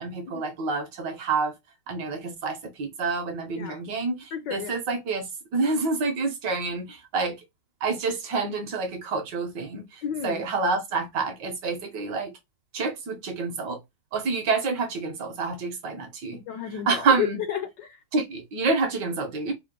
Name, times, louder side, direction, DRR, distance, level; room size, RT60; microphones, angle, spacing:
voice 1, 0.0-1.5 1.9-5.3 5.5-7.4 7.8-12.3 12.7-13.8 14.1-16.4 16.9-17.4 18.1-19.5, right 4 dB, 65° right, 1.3 m, -28 dB
voice 2, 4.3-4.7 10.0-10.4 16.3-18.0, left 9 dB, 70° left, 1.1 m, -32 dB
4.6 x 2.0 x 3.6 m
omnidirectional pair, 2.3 m